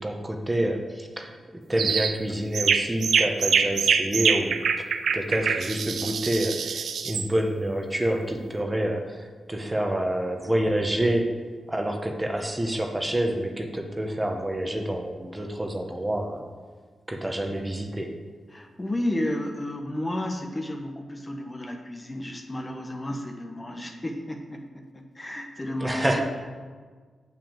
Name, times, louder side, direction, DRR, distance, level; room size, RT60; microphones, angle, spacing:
voice 1, 0.0-4.8 5.1-11.4 11.7-16.4 17.1-18.2 25.8-26.2, right 1 dB, 15° right, 3 dB, 1.3 m, -28 dB
sound 1, 1.8-2.1 2.5-7.3, right 6 dB, 80° right, 0.5 m, -24 dB
voice 2, 18.5-26.2, left 1 dB, 25° left, 3 dB, 1.3 m, -32 dB
6.8 x 6.1 x 7.4 m, 1.5 s
cardioid pair, 60°, 0 cm